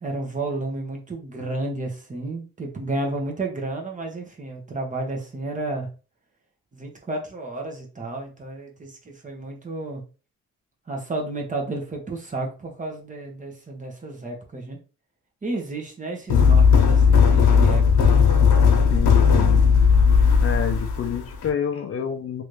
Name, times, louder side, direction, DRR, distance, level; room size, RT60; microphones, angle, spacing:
voice 1, 0.0-5.9 6.7-10.0 10.9-14.8 15.4-18.3, right 2 dB, 25° right, 1.1 m, -32 dB
sound 1, 16.3-21.5, left 6 dB, 85° left, 0.9 m, -16 dB
voice 2, 18.9-19.6 20.4-22.4, left 8 dB, 50° left, 0.6 m, -28 dB
3.1 x 2.7 x 3.2 m
cardioid pair, 90°, 30 cm